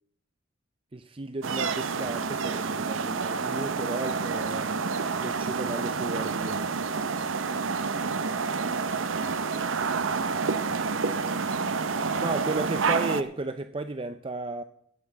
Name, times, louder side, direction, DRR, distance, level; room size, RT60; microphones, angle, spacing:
voice 1, 0.9-6.6 12.2-14.6, right 2 dB, 30° right, 0.5 m, -34 dB
sound 1, 1.4-13.2, right 5 dB, 85° right, 0.8 m, -29 dB
voice 2, 8.3-13.0, left 1 dB, 5° left, 2.6 m, -52 dB
15.5 x 5.8 x 8.3 m
head